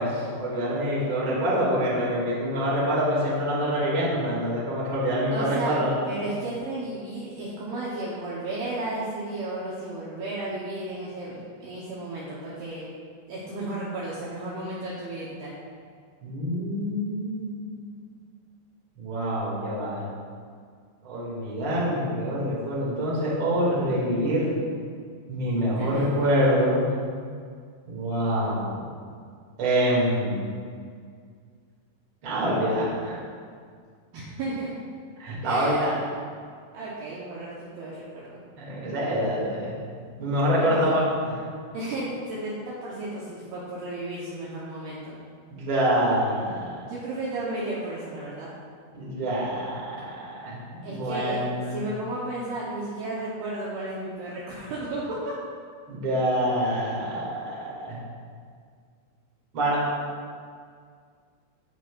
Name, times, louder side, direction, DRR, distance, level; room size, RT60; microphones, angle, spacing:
voice 1, 0.0-5.9 16.2-17.8 19.0-20.0 21.0-24.5 25.3-26.8 27.9-28.8 29.6-30.5 32.2-33.2 35.2-35.9 38.6-39.7 40.2-41.4 45.5-46.8 48.9-51.8 55.9-58.0 59.5-59.8, equal, 35° right, -6 dB, 2.3 m, -26 dB
voice 2, 5.3-5.8 6.0-12.8 13.3-15.5 25.8-26.3 34.1-34.7 35.4-35.9 36.7-38.4 40.6-40.9 41.7-45.2 46.9-48.5 50.8-55.4, right 2 dB, 70° right, -7 dB, 2.7 m, -33 dB
17.0 x 6.1 x 2.5 m, 2.1 s
omnidirectional pair, 5.5 m